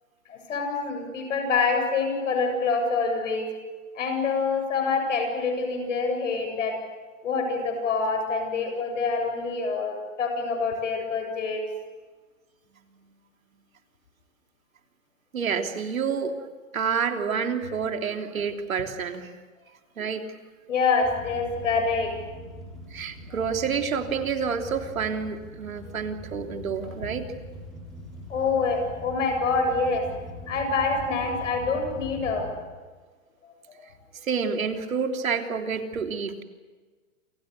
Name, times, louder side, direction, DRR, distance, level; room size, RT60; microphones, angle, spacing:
voice 1, 0.3-3.5 3.9-6.8 7.2-11.6 20.7-22.1 28.3-30.2 30.5-32.5, left 4 dB, 70° left, 5 dB, 7.8 m, -26 dB
voice 2, 15.3-19.3 20.0-20.2 22.9-27.3 34.2-36.4, right 6 dB, 85° right, 4 dB, 3.4 m, -29 dB
sound 1, 21.0-32.5, equal, ahead, 6.9 m, -42 dB
28.5 x 27.0 x 6.9 m, 1.4 s
hypercardioid pair, 160°, 40 cm